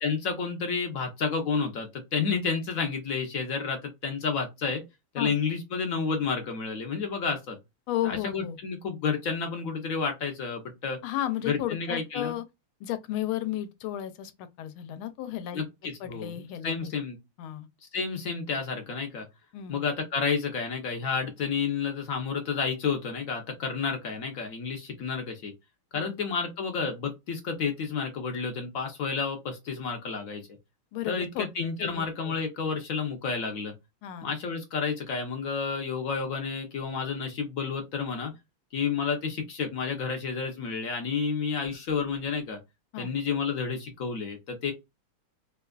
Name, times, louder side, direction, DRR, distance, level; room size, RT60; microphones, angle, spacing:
voice 1, 0.0-4.8 5.1-7.6 8.0-11.0 11.5-12.4 15.5-16.3 16.6-17.2 17.9-19.3 19.7-25.5 25.9-30.4 31.1-33.7 34.2-38.3 38.7-42.6 43.0-44.7, left 5 dB, 65° left, 0.8 m, -30 dB
voice 2, 7.9-8.6 11.0-12.4 12.8-15.6 16.0-16.9 17.4-17.7 19.5-19.8 25.9-26.1 30.9-31.5 31.8-32.4 34.0-34.3 42.9-43.1, left 12 dB, 85° left, 1.4 m, -33 dB
4.3 x 2.3 x 2.3 m
omnidirectional pair, 2.3 m